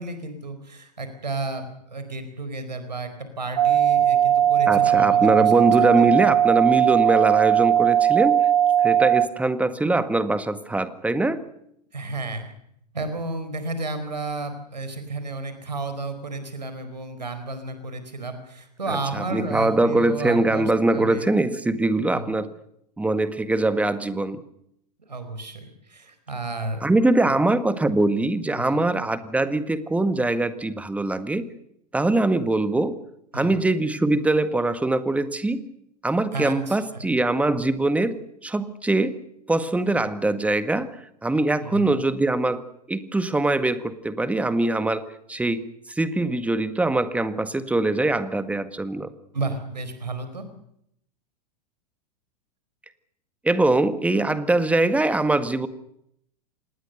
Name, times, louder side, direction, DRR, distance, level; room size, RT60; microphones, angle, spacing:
voice 1, 0.0-3.1 3.4-5.5 5.8-6.1 11.9-12.5 12.9-21.3 22.1-22.4 25.1-26.9 27.2-27.3 28.6-28.8 33.3-33.7 36.3-37.1 41.6-41.9 49.3-50.4, right 2 dB, 80° right, 9 dB, 4.7 m, -32 dB
sound 1, 3.6-9.3, right 10 dB, 60° right, 1.4 m, -18 dB
voice 2, 4.7-8.4 8.8-11.5 18.9-22.5 23.0-24.4 26.8-31.5 31.9-33.0 33.3-35.7 36.0-39.2 39.5-40.9 41.2-49.1 53.4-55.7, right 2 dB, 5° right, 12 dB, 1.8 m, -22 dB
26.0 x 20.0 x 6.8 m, 0.73 s
figure-of-eight pair, 95°, 21 cm